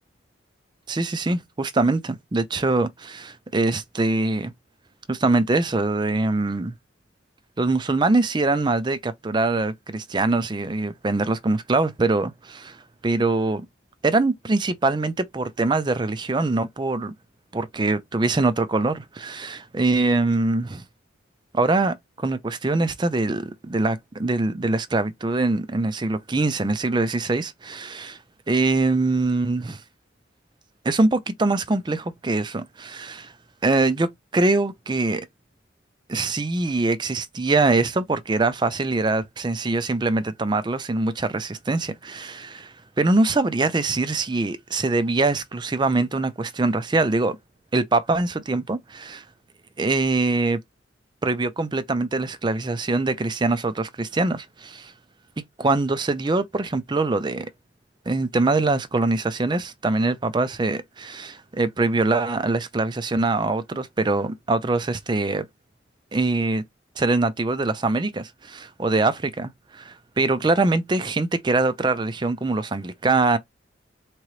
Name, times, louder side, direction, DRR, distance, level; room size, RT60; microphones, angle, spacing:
voice 1, 0.9-4.5 5.1-6.7 7.6-12.8 13.0-13.7 14.0-17.1 17.5-20.8 21.5-28.2 28.5-29.8 30.8-33.3 33.6-35.3 36.1-47.4 47.7-49.2 49.8-50.6 51.2-54.9 55.6-57.5 58.1-65.5 66.1-66.6 67.0-73.4, right 3 dB, 25° right, 0.4 m, -23 dB
3.7 x 3.0 x 3.1 m
head